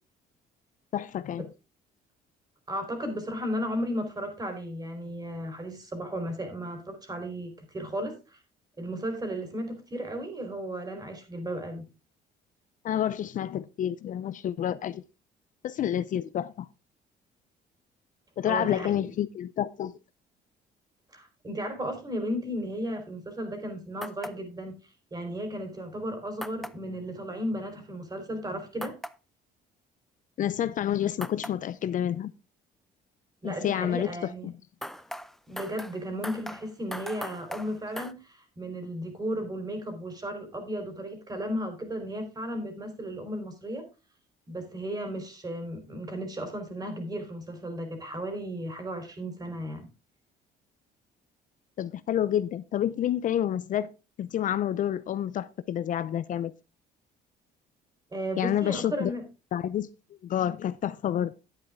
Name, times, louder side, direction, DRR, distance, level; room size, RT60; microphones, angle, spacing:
voice 1, 0.9-1.5 12.8-15.0 15.6-16.7 18.4-19.9 30.4-32.3 33.4-34.5 51.8-53.9 54.2-56.5 58.4-59.1 59.5-59.9 60.2-61.3, left 10 dB, 50° left, 0.5 m, -29 dB
voice 2, 2.7-8.4 8.8-11.9 18.4-19.1 21.1-24.8 25.1-29.0 33.4-34.5 35.5-43.9 44.5-49.9 58.1-59.2, equal, 25° right, 3.8 m, -35 dB
sound 1, 24.0-24.3 26.4-26.7 28.8-29.1 31.2-31.5 34.8-38.1, equal, ahead, 0.6 m, -39 dB
10.5 x 8.7 x 3.6 m
cardioid pair, 110°, 17 cm